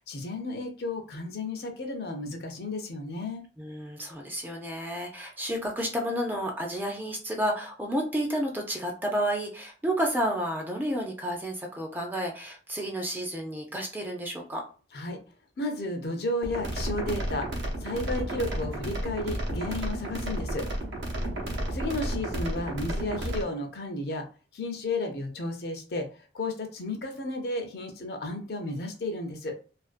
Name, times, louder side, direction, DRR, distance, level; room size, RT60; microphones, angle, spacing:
voice 1, 0.0-3.4 14.9-15.2 15.6-17.5 17.8-20.7 21.7-24.2 24.5-26.1 26.3-29.6, left 2 dB, 55° left, 4 dB, 0.5 m, -33 dB
voice 2, 3.6-14.6 21.2-21.7, equal, 10° right, 1 dB, 0.3 m, -31 dB
sound 1, 16.4-23.4, right 1 dB, 80° right, 0.6 m, -32 dB
2.4 x 2.2 x 2.4 m, 0.37 s
head